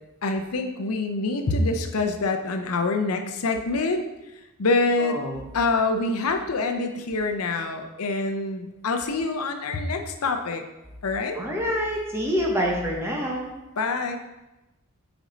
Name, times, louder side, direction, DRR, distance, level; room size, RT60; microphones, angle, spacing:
voice 1, 0.2-4.0 4.6-5.2 5.5-10.6 11.0-11.4 13.8-14.2, left 3 dB, 80° left, 6 dB, 0.6 m, -25 dB
voice 2, 5.1-5.4 11.3-13.5, equal, 10° right, -2 dB, 1.0 m, -26 dB
6.2 x 5.2 x 3.9 m, 1.0 s
head